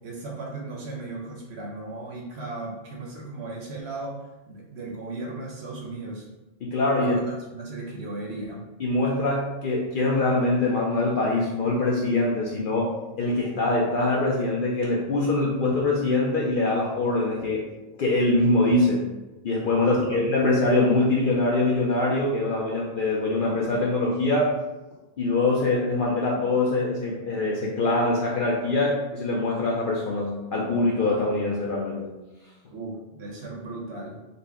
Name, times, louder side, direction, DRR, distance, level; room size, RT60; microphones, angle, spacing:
voice 1, 0.0-4.2 4.5-6.3 7.0-8.7 19.8-20.2 32.7-34.2, right 2 dB, 65° right, -1 dB, 0.8 m, -36 dB
voice 2, 6.6-7.1 8.8-17.6 18.0-19.0 19.4-24.5 25.2-32.1, left 2 dB, 60° left, -3 dB, 0.6 m, -23 dB
3.9 x 2.1 x 3.4 m, 1.1 s
omnidirectional pair, 1.2 m